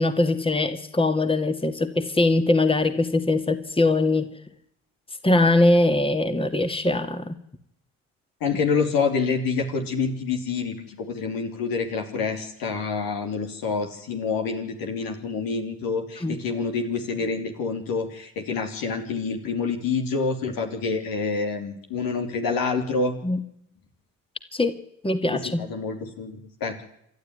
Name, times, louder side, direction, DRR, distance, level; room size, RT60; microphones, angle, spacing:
voice 1, 0.0-4.3 5.2-7.4 16.2-16.4 23.2-23.4 24.5-24.8 25.0-25.6, left 2 dB, 15° left, 8 dB, 2.2 m, -22 dB
voice 2, 8.4-23.2 25.3-26.8, left 4 dB, 70° left, 4 dB, 3.3 m, -27 dB
27.5 x 12.0 x 9.6 m, 0.77 s
hypercardioid pair, 45°, 37 cm